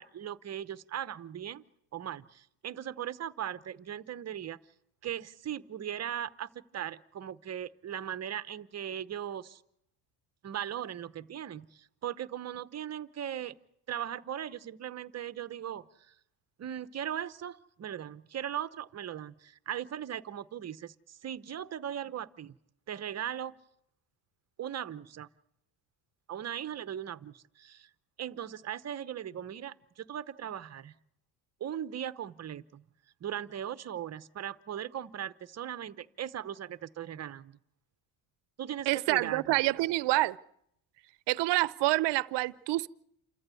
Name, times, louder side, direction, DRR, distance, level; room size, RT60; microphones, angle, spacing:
voice 1, 0.0-1.6 1.9-4.6 5.0-9.6 10.4-13.6 13.9-16.1 16.6-22.6 22.9-23.5 24.6-25.3 26.3-27.9 28.2-30.9 31.6-32.8 33.2-37.6 38.6-39.6, right 10 dB, 35° right, 0.9 m, -38 dB
voice 2, 38.9-40.4 41.3-42.9, right 18 dB, 60° right, 0.8 m, -27 dB
28.5 x 14.5 x 8.3 m
cardioid pair, 115°, 47 cm